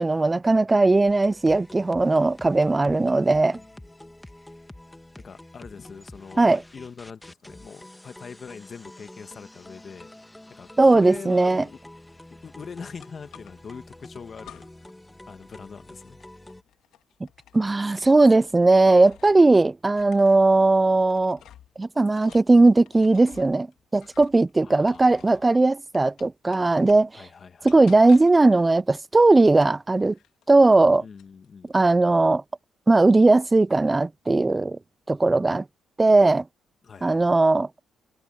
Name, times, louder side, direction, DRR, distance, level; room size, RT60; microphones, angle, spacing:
voice 1, 0.0-3.6 6.4-6.6 10.8-11.6 17.5-21.4 21.8-23.7 23.9-27.1 27.6-30.2 30.5-31.0 31.7-32.4 32.9-34.8 35.1-35.6 36.0-36.4 37.0-37.7, right 2 dB, 20° right, 0.3 m, -18 dB
sound 1, 1.1-16.6, left 1 dB, 10° left, 1.7 m, -47 dB
voice 2, 2.8-3.9 5.2-10.1 10.5-11.8 12.4-14.7 15.3-16.2 24.6-25.4 27.1-27.7 31.0-31.7 36.8-37.2, left 6 dB, 45° left, 1.7 m, -43 dB
sound 2, 13.0-13.8 14.4-15.0 15.3-19.5 19.9-25.5 25.9-27.2 27.7-28.5 29.5-30.9 31.2-31.8, left 11 dB, 80° left, 3.0 m, -53 dB
cardioid pair, 90°, 0 cm